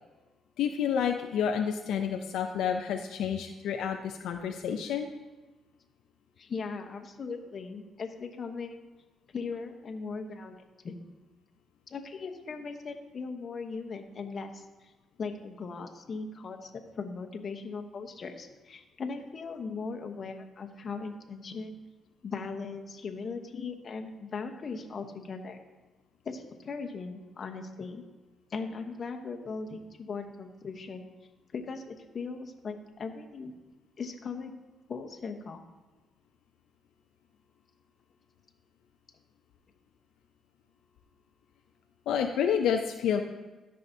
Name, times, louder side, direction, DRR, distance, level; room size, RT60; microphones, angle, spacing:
voice 1, 0.6-5.1 42.1-43.2, left 8 dB, 80° left, 4 dB, 0.5 m, -29 dB
voice 2, 6.4-8.9 9.3-10.6 10.8-10.9 11.9-14.9 15.2-16.7 17.0-21.8 22.2-25.6 26.2-28.0 28.5-31.0 31.5-33.5 34.0-34.6 34.9-35.6, left 4 dB, 45° left, 4 dB, 1.0 m, -38 dB
13.5 x 5.6 x 2.7 m, 1.2 s
cardioid pair, 90°, 0 cm